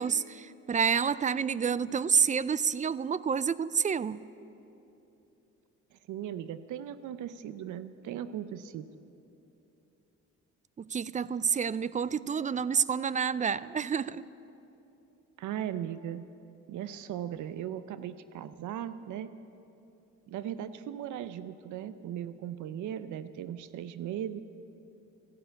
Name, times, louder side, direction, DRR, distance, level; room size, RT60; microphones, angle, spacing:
voice 1, 0.0-4.2 10.8-14.2, right 6 dB, 25° right, 18 dB, 0.4 m, -29 dB
voice 2, 5.9-8.9 15.4-16.3 16.7-19.3 20.3-24.4, right 10 dB, 75° right, 13 dB, 0.6 m, -38 dB
13.5 x 12.0 x 9.0 m, 2.9 s
cardioid pair, 90°, 30 cm